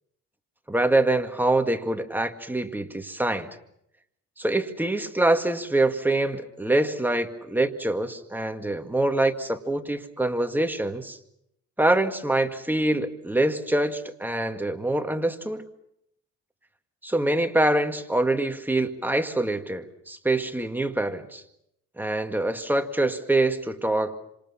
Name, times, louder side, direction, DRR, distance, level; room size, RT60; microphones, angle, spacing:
voice 1, 0.7-3.5 4.4-11.2 11.8-15.6 17.0-21.4 22.0-24.2, right 2 dB, 5° right, 6 dB, 2.1 m, -25 dB
27.5 x 26.5 x 5.8 m, 0.76 s
cardioid pair, 90°, 30 cm